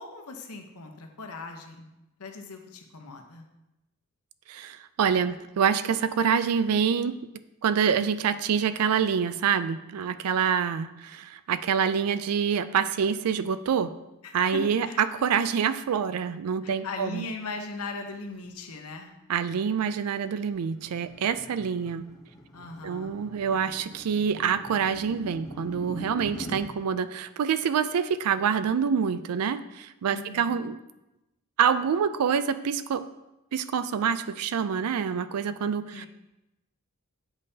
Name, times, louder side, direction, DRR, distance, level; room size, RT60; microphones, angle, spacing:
voice 1, 0.0-1.9 2.2-3.5 14.2-15.0 16.6-19.1 22.5-23.1 30.1-30.5 35.9-36.1, left 3 dB, 85° left, 4 dB, 0.9 m, -39 dB
voice 2, 4.5-7.2 7.6-13.9 14.3-17.2 19.3-22.1 22.8-30.8 31.6-33.1 33.5-36.1, right 7 dB, 85° right, 13 dB, 0.4 m, -26 dB
sound 1, 20.2-26.6, equal, 15° left, 0.8 m, -43 dB
8.3 x 5.3 x 2.8 m, 0.95 s
head